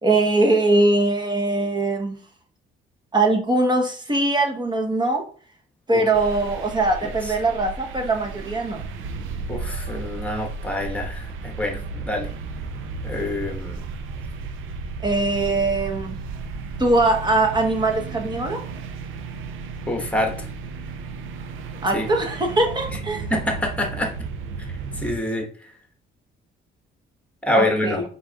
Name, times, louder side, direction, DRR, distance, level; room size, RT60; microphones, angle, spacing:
voice 1, 0.0-2.2 3.1-5.3 5.9-8.8 15.0-16.1 16.8-18.6 21.8-23.3 27.5-28.0, right 2 dB, 20° right, 1.0 m, -21 dB
sound 1, 6.1-25.2, right 4 dB, 85° right, 0.5 m, -34 dB
voice 2, 9.5-12.3 13.0-13.8 19.9-20.5 21.9-22.1 22.9-23.0 23.3-24.1 25.0-25.5 27.4-28.0, left 1 dB, 5° left, 1.3 m, -26 dB
4.6 x 3.9 x 2.4 m
cardioid pair, 90°, 20 cm